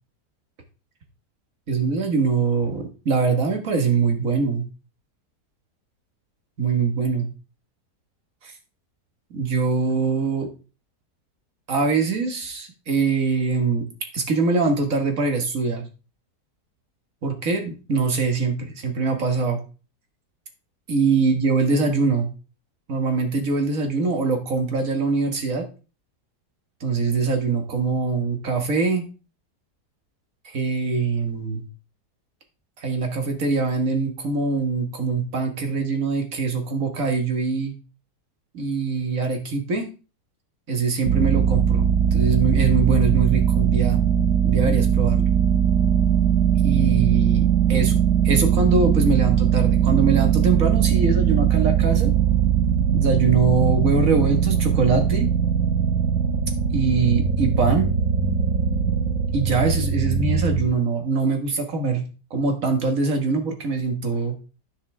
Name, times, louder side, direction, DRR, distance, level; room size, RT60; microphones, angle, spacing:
voice 1, 1.7-4.6 6.6-7.3 8.4-8.5 9.3-10.5 11.7-13.9 14.1-15.8 17.2-19.6 20.9-22.3 22.9-25.6 26.8-29.1 30.4-31.6 32.8-37.7 38.5-39.8 40.7-41.9 42.1-44.0 44.4-45.3 46.6-52.1 52.9-55.3 56.7-57.9 59.3-62.0 62.3-64.4, right 4 dB, 55° right, 4 dB, 1.9 m, -23 dB
sound 1, 41.0-60.7, right 8 dB, 85° right, 1.6 m, -20 dB
9.9 x 5.6 x 3.4 m, 0.33 s
omnidirectional pair, 1.7 m